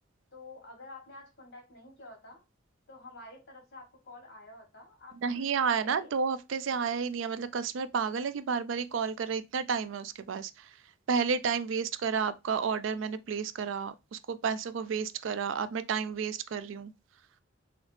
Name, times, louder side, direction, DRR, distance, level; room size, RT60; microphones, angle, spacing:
voice 1, 0.3-2.4 2.9-6.1, left 2 dB, 60° left, 1.9 m, -50 dB
voice 2, 5.2-10.7 11.1-16.9, right 6 dB, 75° right, 0.4 m, -31 dB
3.9 x 3.0 x 3.2 m
head